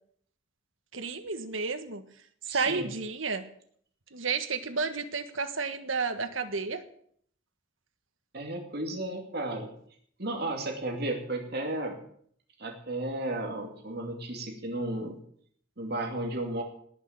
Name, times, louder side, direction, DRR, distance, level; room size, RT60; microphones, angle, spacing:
voice 1, 0.9-2.0 2.4-3.4 4.1-6.8, right 4 dB, 85° right, 9 dB, 1.6 m, -31 dB
voice 2, 2.5-2.9 8.3-9.7 10.2-12.0 12.6-15.2 15.8-16.6, right 1 dB, 55° right, 3 dB, 2.6 m, -33 dB
19.0 x 6.5 x 8.8 m, 0.63 s
head